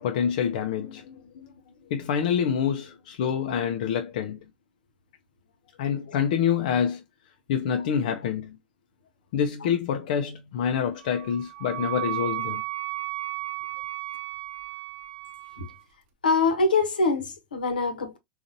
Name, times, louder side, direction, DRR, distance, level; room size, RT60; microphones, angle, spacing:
voice 1, 0.0-1.5 1.9-4.4 5.8-7.0 7.5-8.6 9.3-12.6, left 8 dB, 65° left, 0.5 m, -27 dB
Wind instrument woodwind instrument, 11.0-15.8, right 19 dB, 50° right, 0.5 m, -34 dB
voice 2, 16.2-18.2, left 3 dB, 90° left, 0.9 m, -24 dB
3.8 x 2.5 x 2.6 m
hypercardioid pair, 100°, 5 cm